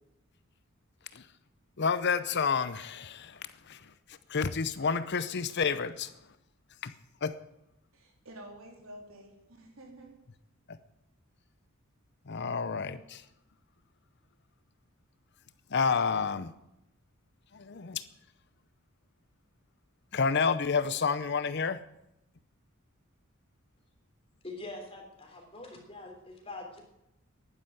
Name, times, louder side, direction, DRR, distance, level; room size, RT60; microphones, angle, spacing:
voice 1, 1.8-6.1 6.8-6.9 7.2-7.3 10.7-10.8 12.3-13.3 15.7-16.5 17.5-18.0 20.1-21.8, left 5 dB, 55° left, 0.7 m, -30 dB
voice 2, 7.9-10.2, right 1 dB, 75° right, 3.5 m, -50 dB
voice 3, 24.4-26.8, left 2 dB, 25° left, 3.4 m, -44 dB
11.5 x 9.9 x 9.3 m
head